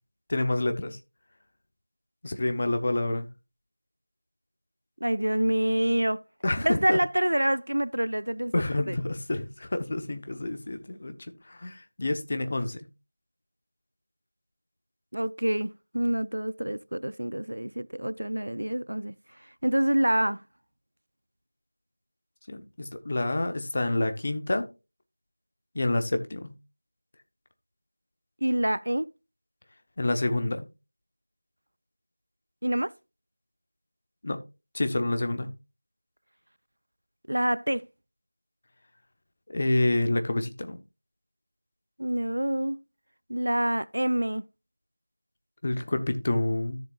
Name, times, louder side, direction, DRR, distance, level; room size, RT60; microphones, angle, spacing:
voice 1, 0.3-1.0 2.2-3.3 6.4-7.0 8.5-11.1 11.5-12.9 22.5-24.7 25.7-26.5 30.0-30.7 34.2-34.4 34.7-35.5 39.5-40.8 45.6-46.8, left 2 dB, 30° left, 1.0 m, -28 dB
voice 2, 5.0-6.2 6.6-9.0 15.1-19.1 19.6-20.4 28.4-29.1 32.6-32.9 37.3-37.9 42.0-42.8 43.3-44.4, right 1 dB, 70° right, 0.5 m, -27 dB
13.0 x 7.2 x 2.4 m
figure-of-eight pair, 170°, 0 cm